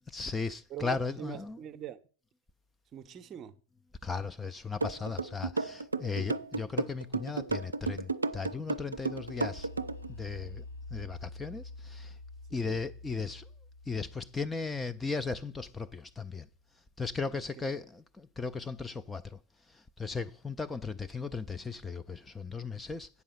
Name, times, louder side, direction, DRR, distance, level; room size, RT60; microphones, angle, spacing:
voice 1, 0.1-1.6 4.0-9.7 10.2-10.6 10.9-12.1 12.5-13.4 13.9-16.5 17.0-19.4 20.0-23.1, left 4 dB, 10° left, 0.4 m, -36 dB
voice 2, 0.7-2.0 2.9-3.5 6.1-6.3 12.5-12.8 17.3-17.4 17.7-17.8, right 10 dB, 30° right, 0.7 m, -43 dB
sound 1, 4.8-10.1, right 3 dB, 80° right, 0.4 m, -32 dB
sound 2, 8.7-16.4, left 2 dB, 70° left, 0.7 m, -48 dB
8.2 x 5.4 x 6.8 m
figure-of-eight pair, 90°, 0 cm